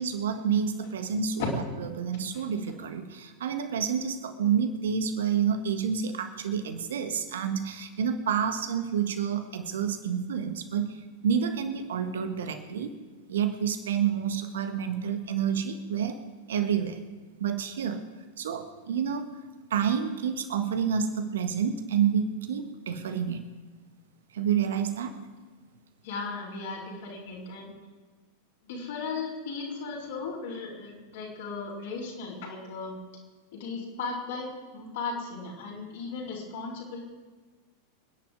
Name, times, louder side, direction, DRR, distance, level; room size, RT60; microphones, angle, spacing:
voice 1, 0.0-1.5 1.9-12.9 13.3-16.2 16.5-17.0 17.4-18.0 18.4-19.3 19.7-23.5 24.3-25.2, right 7 dB, 60° right, 8 dB, 1.6 m, -29 dB
voice 2, 26.0-27.8 28.6-32.9 33.5-37.0, left 4 dB, 55° left, -5 dB, 4.3 m, -36 dB
27.5 x 10.5 x 3.8 m, 1.4 s
figure-of-eight pair, 90°, 0 cm